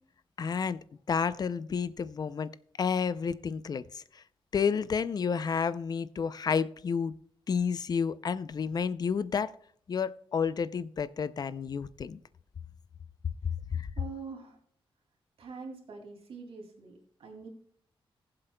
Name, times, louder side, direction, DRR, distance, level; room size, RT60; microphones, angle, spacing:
voice 1, 0.4-0.8 1.1-4.2 4.5-7.1 7.5-9.5 9.9-12.2 13.7-13.9, left 6 dB, 45° left, 0.4 m, -30 dB
voice 2, 14.0-14.6 15.4-17.5, right 4 dB, 90° right, 2.4 m, -44 dB
20.5 x 7.6 x 2.2 m
wide cardioid pair, 155°, 9 cm